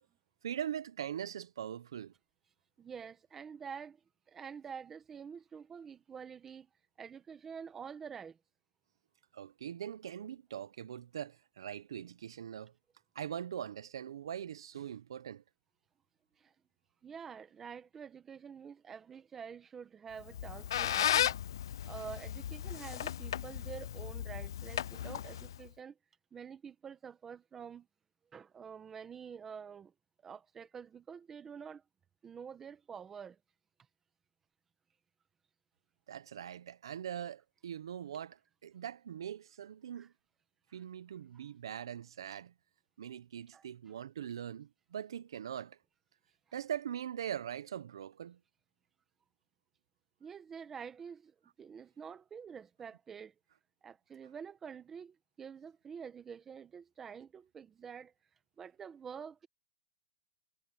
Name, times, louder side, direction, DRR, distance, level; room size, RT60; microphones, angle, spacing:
voice 1, 0.4-2.1 9.3-12.7 13.1-15.4 36.1-40.1 40.7-42.5 43.0-45.8 46.5-48.4, right 9 dB, 70° right, 0.9 m, -42 dB
voice 2, 2.8-4.0 4.3-6.7 7.0-8.4 16.4-16.5 17.0-21.4 21.9-26.0 26.3-27.9 28.3-29.9 30.2-31.8 32.2-33.4 40.0-40.1 43.5-43.6 50.2-53.3 53.8-58.1 58.6-59.5, right 7 dB, 10° right, 1.3 m, -47 dB
Squeak, 20.2-25.7, left 10 dB, 60° left, 0.3 m, -35 dB
hypercardioid pair, 170°, 3 cm